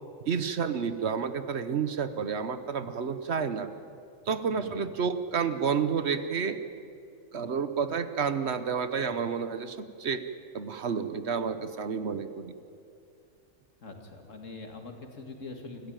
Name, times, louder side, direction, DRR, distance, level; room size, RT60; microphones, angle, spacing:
voice 1, 0.3-3.7 4.3-6.6 7.3-10.2 10.5-12.5, right 6 dB, 60° right, 11 dB, 1.2 m, -30 dB
voice 2, 4.5-4.9 13.8-15.9, left 3 dB, 75° left, 4 dB, 2.5 m, -43 dB
26.0 x 14.5 x 9.0 m, 2.6 s
omnidirectional pair, 1.3 m